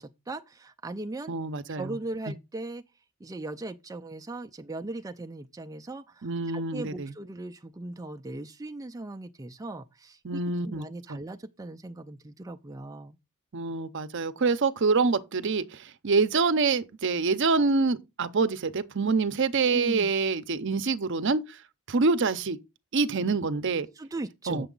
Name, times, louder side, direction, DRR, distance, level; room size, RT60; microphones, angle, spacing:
voice 1, 0.0-1.3 1.8-2.8 3.2-13.2 19.7-20.1 23.9-24.7, right 2 dB, 15° right, 0.4 m, -39 dB
voice 2, 1.3-2.0 6.2-7.1 10.2-10.8 13.5-21.6 21.9-22.6 22.9-23.9 24.5-24.7, right 4 dB, 55° right, 0.6 m, -26 dB
8.2 x 6.8 x 3.8 m
head